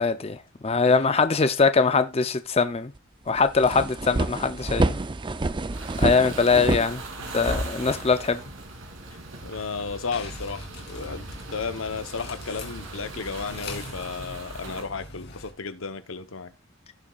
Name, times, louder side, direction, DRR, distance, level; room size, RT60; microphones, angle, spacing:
voice 1, 0.0-2.9 3.3-5.0 6.0-7.0 7.3-8.4, left 4 dB, 30° left, 0.6 m, -22 dB
sound 1, 3.0-3.1 3.4-7.6, right 2 dB, 25° right, 0.5 m, -27 dB
sound 2, 5.7-14.8, right 2 dB, 75° right, 3.0 m, -38 dB
voice 2, 7.2-7.6 9.1-16.5, left 5 dB, 80° left, 0.9 m, -34 dB
sound 3, 10.1-15.5, left 2 dB, 55° left, 2.6 m, -42 dB
16.0 x 7.0 x 2.4 m
head